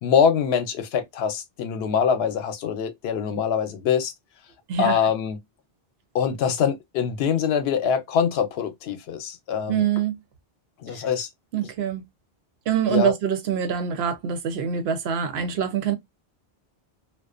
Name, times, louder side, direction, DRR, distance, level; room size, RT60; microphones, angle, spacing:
voice 1, 0.0-4.1 4.8-5.4 6.1-9.8 10.8-11.3 12.9-13.1, left 7 dB, 85° left, 0.8 m, -24 dB
voice 2, 9.7-10.2 10.9-11.0 11.5-12.0 12.7-16.0, right 8 dB, 85° right, 0.9 m, -25 dB
2.5 x 2.1 x 2.4 m
omnidirectional pair, 1.0 m